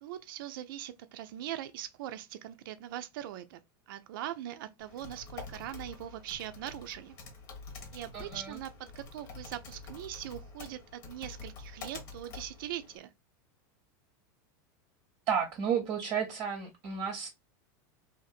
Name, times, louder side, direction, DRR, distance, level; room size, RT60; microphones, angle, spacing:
voice 1, 0.0-3.6 3.9-7.2 7.9-13.1, right 12 dB, 75° right, 0.4 m, -41 dB
Typing, 4.8-13.0, left 4 dB, 65° left, 1.1 m, -47 dB
voice 2, 8.1-8.6 15.3-17.3, right 7 dB, 35° right, 0.7 m, -32 dB
2.7 x 2.5 x 2.4 m
supercardioid pair, 125°, 11 cm